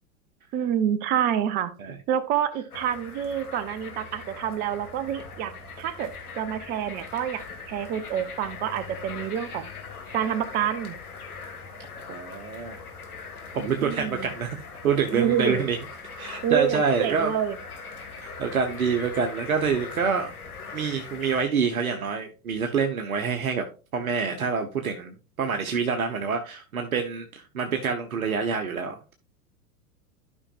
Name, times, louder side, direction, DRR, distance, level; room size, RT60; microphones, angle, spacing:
voice 1, 0.5-1.7 2.1-6.1 6.4-9.7 10.1-11.0 13.8-14.4 15.1-15.6 16.4-17.6, right 9 dB, 20° right, 15 dB, 0.5 m, -27 dB
sound 1, 2.7-21.4, left 5 dB, 75° left, 1.9 m, -41 dB
voice 2, 12.1-12.8 13.5-14.6 14.8-15.8 16.2-17.3 18.2-20.3 20.7-23.7 23.9-29.1, right 6 dB, 70° right, 5 dB, 1.1 m, -27 dB
12.5 x 5.5 x 2.4 m, 0.34 s
figure-of-eight pair, 95°, 45 cm